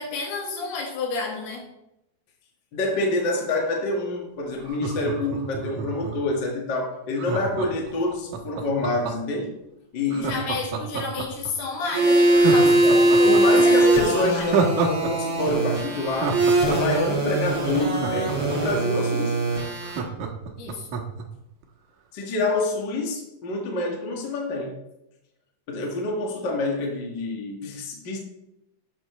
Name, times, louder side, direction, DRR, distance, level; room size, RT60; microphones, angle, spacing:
voice 1, 0.0-1.7 10.2-14.5 20.6-20.9, left 3 dB, 75° left, 1 dB, 3.8 m, -31 dB
voice 2, 2.7-9.5 9.9-10.4 12.8-19.3 22.1-24.8 25.7-28.2, left 2 dB, 40° left, 0 dB, 1.8 m, -27 dB
Laughter, 4.6-6.3 7.2-9.4 10.1-11.5 11.9-12.0 12.3-15.1 15.4-15.5 15.9-18.8 19.2-19.3 19.5-21.2 21.6-21.7, right 5 dB, 65° right, 2.1 m, -28 dB
sound 1, 11.8-20.0, right 1 dB, 35° right, 5.1 m, -21 dB
12.0 x 8.6 x 3.3 m, 0.87 s
omnidirectional pair, 4.6 m